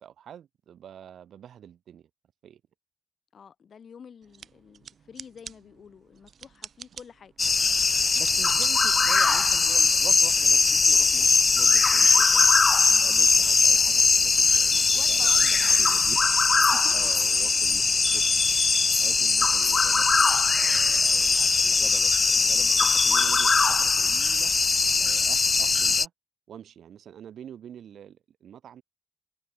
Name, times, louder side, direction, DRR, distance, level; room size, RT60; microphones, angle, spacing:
voice 1, 0.0-2.1 2.4-2.6 8.1-12.5 13.0-16.2 16.5-18.3 18.6-20.1 20.6-24.5 25.0-26.1 26.5-28.8, right 9 dB, 75° right, 7.8 m, -45 dB
voice 2, 3.3-7.3 12.9-13.2 14.9-15.7 16.7-17.3, left 7 dB, 55° left, 4.6 m, -48 dB
sound 1, 4.2-10.3, right 7 dB, 60° right, 1.1 m, -47 dB
sound 2, 7.4-26.1, left 4 dB, 35° left, 0.4 m, -21 dB
cardioid pair, 110°, 0 cm